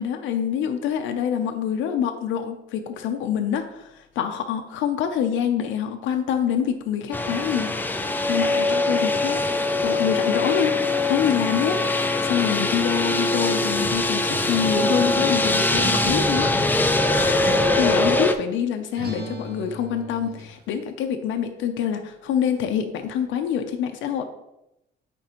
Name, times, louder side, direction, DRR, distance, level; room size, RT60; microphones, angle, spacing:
voice 1, 0.0-7.7 8.0-10.8 11.1-11.8 12.0-16.6 16.9-24.2, left 8 dB, 90° left, 6 dB, 0.6 m, -26 dB
sound 1, 7.1-18.3, left 2 dB, 10° left, 0.3 m, -22 dB
Acoustic guitar, 14.3-18.4 19.0-20.5, right 1 dB, 55° right, 1.1 m, -35 dB
8.9 x 3.5 x 2.9 m, 0.87 s
cardioid pair, 135°, 19 cm